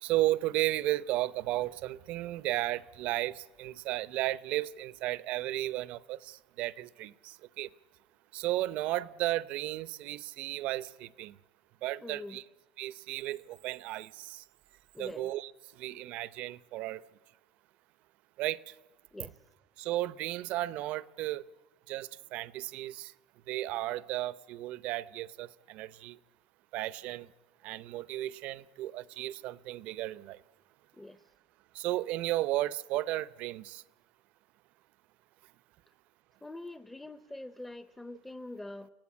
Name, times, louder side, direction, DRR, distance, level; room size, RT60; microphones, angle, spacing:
voice 1, 0.0-7.7 8.3-11.4 11.8-12.4 12.8-14.4 15.0-17.0 18.4-18.7 19.8-21.4 21.9-23.1 23.5-26.2 26.7-27.3 27.6-30.4 31.7-33.8, right 16 dB, 70° right, 0.7 m, -34 dB
voice 2, 12.0-12.4 14.9-15.3 19.1-19.3 30.9-31.2 36.4-38.9, left 1 dB, 10° left, 0.7 m, -44 dB
28.5 x 17.0 x 8.5 m
cardioid pair, 125°, 2 cm